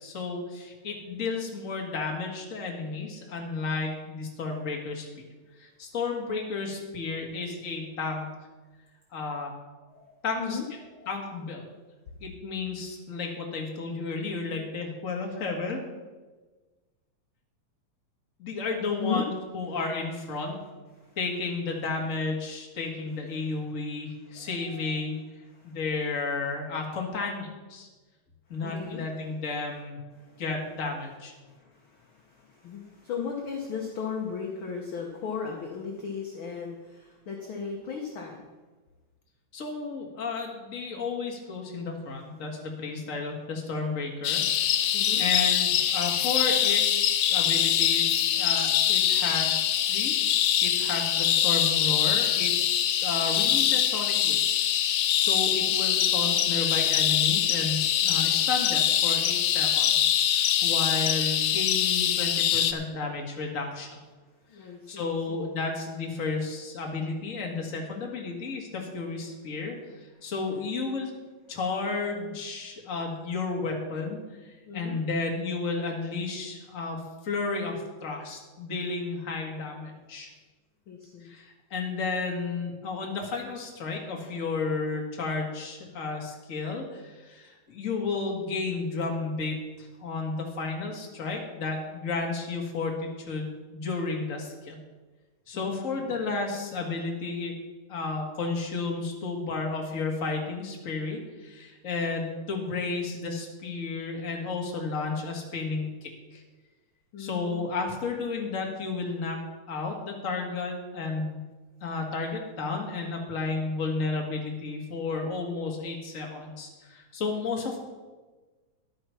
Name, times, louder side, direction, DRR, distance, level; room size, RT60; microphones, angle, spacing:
voice 1, 0.0-5.1 5.6-8.3 9.1-9.6 10.2-10.6 11.1-11.6 12.2-15.8 18.4-20.6 21.2-25.2 25.6-27.9 28.5-30.0 30.4-31.3 39.5-44.8 45.2-49.6 49.9-50.1 50.6-52.5 53.0-54.8 55.2-63.9 64.9-71.1 71.5-74.2 74.7-80.3 81.2-94.8 95.5-97.5 97.9-106.4 107.2-109.4 109.7-111.4 111.8-117.8, left 4 dB, 30° left, 1 dB, 1.7 m, -32 dB
voice 2, 9.8-11.3 19.0-19.3 20.9-21.2 23.3-23.6 24.2-25.2 25.5-25.8 28.5-29.3 30.1-30.4 31.4-38.5 44.8-45.2 64.3-65.5 70.1-70.3 74.7-75.0 80.9-81.3 95.5-96.2 107.1-107.7, left 6 dB, 55° left, 1 dB, 1.6 m, -37 dB
sound 1, 44.2-62.7, left 10 dB, 75° left, 1.7 m, -24 dB
11.0 x 9.1 x 5.7 m, 1.3 s
omnidirectional pair, 3.4 m